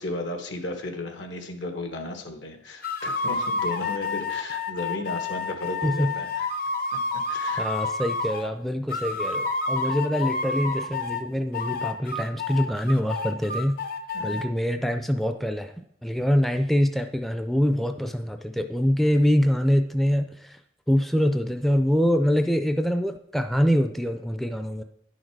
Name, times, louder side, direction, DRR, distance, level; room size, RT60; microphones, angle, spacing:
voice 1, 0.0-6.5 7.3-7.7 14.1-14.4, left 2 dB, 80° left, 5 dB, 1.3 m, -34 dB
sound 1, 2.8-8.5 8.9-11.2 11.5-14.4, left 3 dB, 50° left, 0.7 m, -29 dB
voice 2, 5.8-6.1 7.6-13.8 14.2-15.7 16.0-20.6 20.9-24.8, equal, ahead, 7 dB, 0.4 m, -24 dB
10.0 x 6.4 x 4.6 m, 0.70 s
head